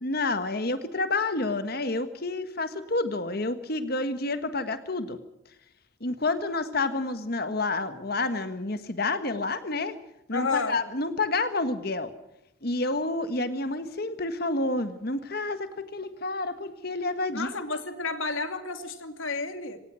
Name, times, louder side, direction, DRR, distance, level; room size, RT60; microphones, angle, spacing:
voice 1, 0.0-5.2 6.0-10.0 10.3-12.1 12.6-17.5, left 2 dB, 50° left, 10 dB, 1.6 m, -29 dB
voice 2, 10.3-10.8 17.3-19.8, left 3 dB, 85° left, 8 dB, 2.6 m, -31 dB
26.5 x 18.0 x 6.4 m, 0.84 s
head